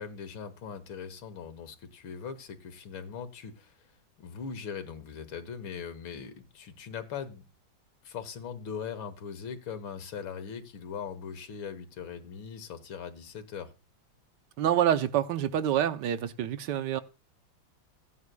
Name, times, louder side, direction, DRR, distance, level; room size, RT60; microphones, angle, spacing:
voice 1, 0.0-3.9 4.2-7.4 8.0-13.7, left 7 dB, 80° left, 2.0 m, -40 dB
voice 2, 14.6-17.0, right 10 dB, 70° right, 1.3 m, -27 dB
16.0 x 9.5 x 2.2 m
omnidirectional pair, 2.2 m